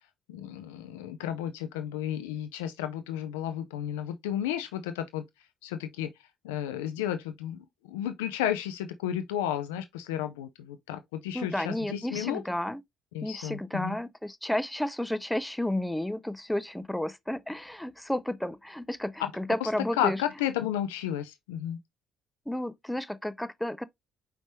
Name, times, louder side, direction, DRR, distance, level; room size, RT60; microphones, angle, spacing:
voice 1, 0.3-5.2 5.6-6.1 6.4-12.4 13.1-13.9 19.6-19.7 20.0-21.8, left 10 dB, 70° left, 0.5 m, -32 dB
voice 2, 11.3-12.8 13.2-20.2 22.5-23.8, left 1 dB, 5° left, 0.5 m, -32 dB
5.1 x 3.4 x 3.1 m
figure-of-eight pair, 50°, 0 cm